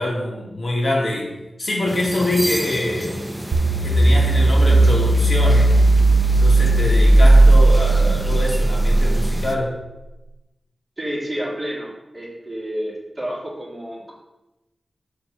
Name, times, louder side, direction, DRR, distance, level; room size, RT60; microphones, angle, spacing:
voice 1, 0.0-1.3 1.6-3.2 3.8-5.7 6.4-9.8, left 1 dB, 45° left, -3 dB, 2.0 m, -24 dB
sound 1, 1.9-9.6, right 1 dB, 5° right, 0.7 m, -31 dB
sound 2, 3.5-9.8, right 2 dB, 90° right, 0.5 m, -15 dB
voice 2, 11.0-14.1, equal, 20° right, -5 dB, 2.6 m, -30 dB
5.8 x 5.2 x 6.7 m, 0.98 s
wide cardioid pair, 105°, 0 cm